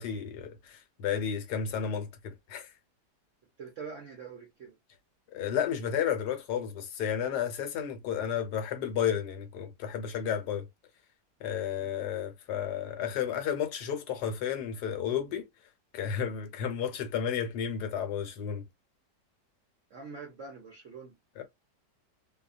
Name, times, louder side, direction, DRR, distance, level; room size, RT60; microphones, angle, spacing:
voice 1, 0.0-2.7 5.3-10.7 11.4-15.4 15.9-18.6 21.4-21.5, left 8 dB, 75° left, 1.2 m, -32 dB
voice 2, 3.6-4.8 11.8-12.0 19.9-21.2, right 5 dB, 60° right, 0.8 m, -44 dB
2.8 x 2.1 x 2.4 m
omnidirectional pair, 1.9 m